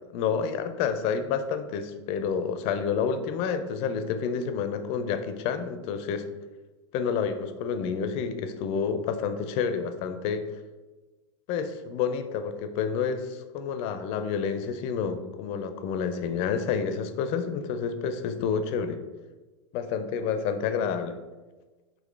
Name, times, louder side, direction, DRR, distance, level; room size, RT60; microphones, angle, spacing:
voice 1, 0.1-6.3 6.9-10.4 11.5-19.0 19.7-21.2, left 6 dB, 40° left, 9 dB, 0.4 m, -29 dB
3.8 x 2.9 x 3.1 m, 1.2 s
figure-of-eight pair, 95°, 16 cm